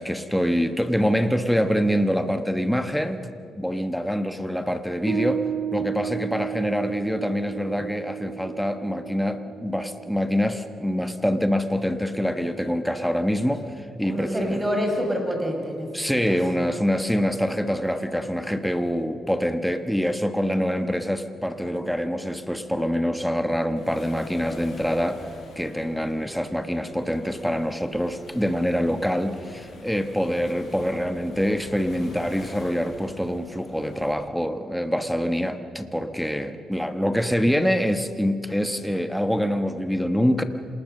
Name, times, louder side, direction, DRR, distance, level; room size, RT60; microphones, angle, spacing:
voice 1, 0.0-3.2 3.6-5.4 5.7-14.6 15.9-25.2 25.6-40.4, equal, ahead, 8 dB, 1.3 m, -25 dB
Piano, 5.1-11.8, right 9 dB, 50° right, 0.7 m, -34 dB
voice 2, 14.0-16.4, equal, 15° right, 3 dB, 5.3 m, -27 dB
Waves surf, 23.8-34.1, left 3 dB, 55° left, 7.5 m, -45 dB
27.0 x 20.0 x 6.7 m, 2.4 s
cardioid pair, 90°, 0 cm